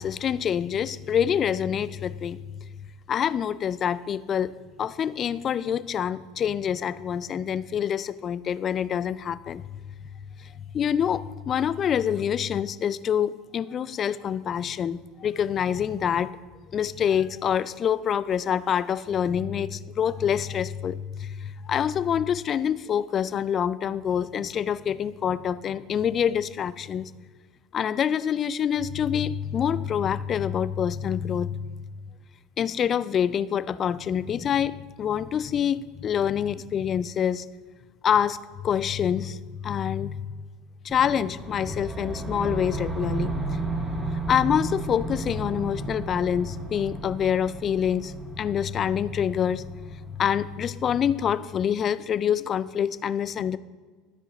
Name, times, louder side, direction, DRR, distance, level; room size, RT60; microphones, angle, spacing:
voice 1, 0.0-2.4 3.1-4.5 4.8-9.6 10.7-16.3 16.7-27.1 27.7-31.6 32.6-37.4 38.0-38.4 38.6-40.2 40.8-43.3 44.3-49.6 50.2-53.6, left 8 dB, 40° left, 15 dB, 0.3 m, -26 dB
sound 1, 40.9-51.0, right 2 dB, 10° right, 1.2 m, -33 dB
13.0 x 4.9 x 3.9 m, 1.5 s
hypercardioid pair, 75°, 0 cm